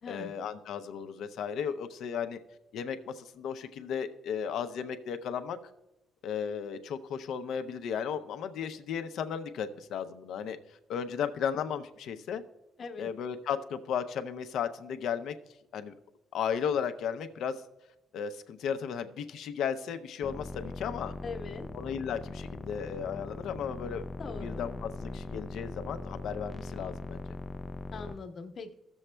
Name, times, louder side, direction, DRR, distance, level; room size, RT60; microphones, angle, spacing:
voice 1, 0.1-2.4 2.7-5.6 6.2-10.6 10.9-12.4 13.0-15.3 15.7-15.9 16.3-17.6 18.1-21.1 21.7-24.0 24.4-27.2, left 7 dB, 80° left, 8 dB, 0.6 m, -35 dB
voice 2, 12.8-13.1 21.2-21.7 24.2-24.7 27.9-28.7, left 4 dB, 55° left, 5 dB, 1.0 m, -41 dB
sound 1, 20.2-28.1, left 2 dB, 20° left, 0.4 m, -40 dB
15.0 x 7.0 x 2.2 m, 0.93 s
cardioid pair, 90°, 0 cm